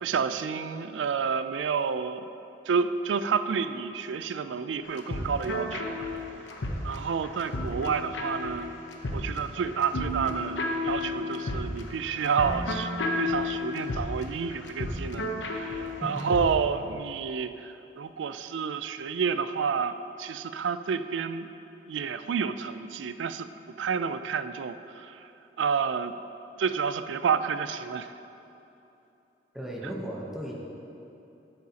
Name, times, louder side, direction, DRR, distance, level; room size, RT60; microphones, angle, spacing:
voice 1, 0.0-2.3 2.7-6.1 6.8-8.7 9.1-10.6 10.8-21.5 21.9-25.2 25.6-26.1 26.6-28.1, right 6 dB, 85° right, 11 dB, 0.4 m, -30 dB
sound 1, 4.8-16.5, left 2 dB, 85° left, 0.9 m, -32 dB
voice 2, 16.0-16.3 29.5-30.6, equal, ahead, -4 dB, 0.9 m, -36 dB
12.0 x 7.8 x 2.9 m, 2.9 s
head